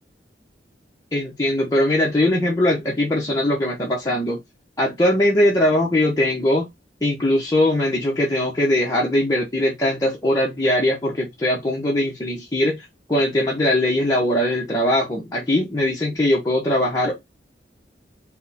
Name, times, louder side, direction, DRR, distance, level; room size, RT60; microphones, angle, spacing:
voice 1, 1.1-4.4 4.8-6.7 7.0-17.2, left 1 dB, 20° left, 0.8 m, -21 dB
4.7 x 2.2 x 4.0 m
head